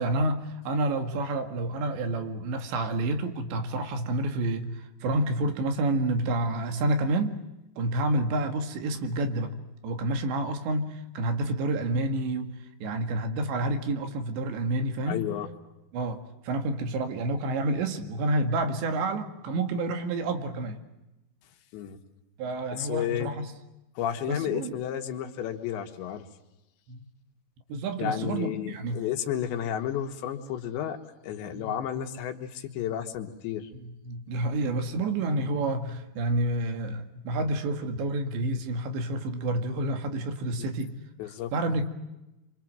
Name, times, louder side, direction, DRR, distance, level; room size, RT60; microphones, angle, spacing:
voice 1, 0.0-7.4 7.8-9.5 9.8-12.6 12.8-15.3 15.9-16.2 16.4-20.8 22.4-23.5 24.3-24.8 26.9-27.1 27.7-29.0 31.5-31.8 33.8-40.9 41.5-41.9, right 2 dB, 80° right, 7 dB, 4.3 m, -29 dB
voice 2, 15.1-15.5 21.7-22.0 22.8-23.3 24.0-26.3 28.0-31.0 31.2-33.7 40.6-40.7 41.2-41.5, left 10 dB, 85° left, 5 dB, 3.9 m, -32 dB
27.5 x 25.0 x 7.7 m, 0.96 s
omnidirectional pair, 5.1 m